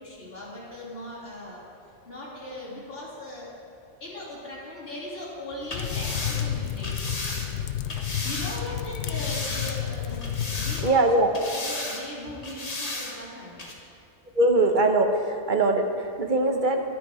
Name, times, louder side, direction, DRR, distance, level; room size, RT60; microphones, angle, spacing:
voice 1, 0.0-1.6 2.0-3.5 4.0-6.9 8.2-13.5, left 1 dB, 50° left, -8 dB, 3.4 m, -39 dB
sound 1, 5.6-8.6 9.1-9.9 10.2-11.0 11.3-12.0 12.4-13.1 13.6-13.7, left 2 dB, 35° left, 1.3 m, -34 dB
sound 2, 5.7-10.9, left 10 dB, 80° left, 0.9 m, -31 dB
voice 2, 10.8-11.3 14.3-16.8, right 2 dB, 45° right, 4 dB, 1.1 m, -22 dB
11.0 x 11.0 x 4.8 m, 2.4 s
omnidirectional pair, 1.2 m